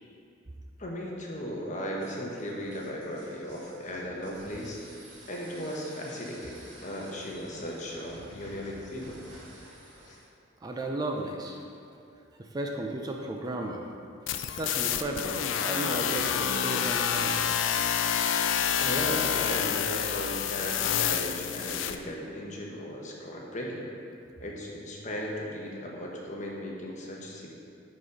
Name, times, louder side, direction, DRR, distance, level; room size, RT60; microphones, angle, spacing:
voice 1, 0.8-4.8 5.3-9.2 10.1-10.2 18.8-23.8 24.4-27.5, equal, 40° left, -2 dB, 1.0 m, -36 dB
sound 1, 2.0-10.3, right 1 dB, 85° right, 1.5 m, -51 dB
voice 2, 10.6-11.6 12.3-13.9 14.6-17.4, right 1 dB, 20° right, 1 dB, 0.5 m, -34 dB
sound 2, 14.3-22.0, left 8 dB, 75° left, 0.4 m, -28 dB
7.5 x 4.1 x 5.1 m, 2.5 s
head